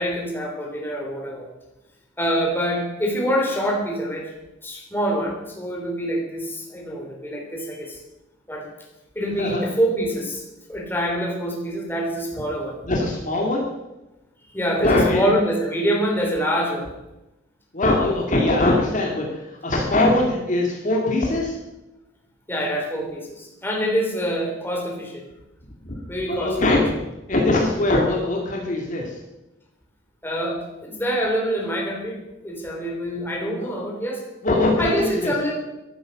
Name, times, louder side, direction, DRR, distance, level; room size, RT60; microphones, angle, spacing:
voice 1, 0.0-1.5 2.2-4.3 4.6-8.0 8.5-8.7 9.2-10.4 10.7-12.8 14.5-16.9 22.5-25.2 26.1-26.6 30.2-34.2 34.8-35.5, equal, 10° left, 0 dB, 3.5 m, -25 dB
voice 2, 12.8-13.7 14.8-15.2 17.7-21.6 25.8-29.1 33.5-33.7 34.4-35.3, left 2 dB, 40° left, -1 dB, 2.3 m, -22 dB
14.0 x 12.0 x 6.5 m, 0.97 s
head